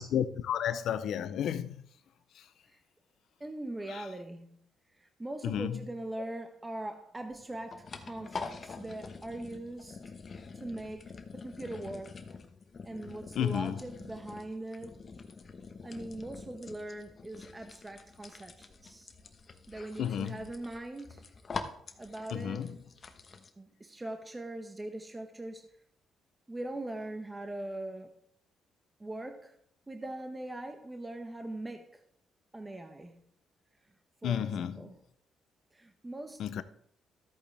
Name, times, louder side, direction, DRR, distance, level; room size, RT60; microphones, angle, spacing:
voice 1, 0.0-1.7 3.9-4.0 5.4-5.8 13.4-13.8 20.0-20.4 22.3-22.7 34.2-34.8 36.4-36.6, left 9 dB, 75° left, 0.7 m, -32 dB
voice 2, 3.4-4.6 5.0-10.0 10.5-12.2 12.8-15.0 15.8-19.1 19.7-21.3 22.0-22.7 23.6-25.7 26.5-28.1 29.0-29.6 29.9-32.0 32.5-33.2 34.2-35.0 35.7-36.6, right 1 dB, 15° right, 1.0 m, -41 dB
sound 1, 7.2-23.5, left 4 dB, 40° left, 1.1 m, -46 dB
13.0 x 8.6 x 3.5 m
cardioid pair, 90°, 0 cm